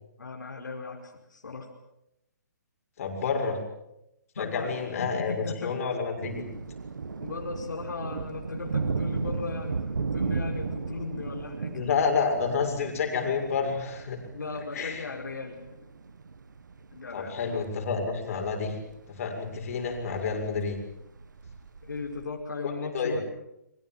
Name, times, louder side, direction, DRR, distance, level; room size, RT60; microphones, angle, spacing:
voice 1, 0.2-1.7 4.4-5.8 7.2-11.7 14.3-15.6 16.9-17.4 21.8-23.2, left 4 dB, 80° left, 0 dB, 5.2 m, -37 dB
voice 2, 3.0-3.6 4.4-5.3 5.6-6.4 11.7-14.2 14.7-15.1 17.1-18.7 19.1-20.8 22.6-23.2, left 5 dB, 50° left, 3 dB, 6.8 m, -29 dB
sound 1, 6.2-22.3, right 4 dB, 80° right, 1.8 m, -36 dB
26.0 x 24.0 x 7.6 m, 0.85 s
hypercardioid pair, 140°, 10 cm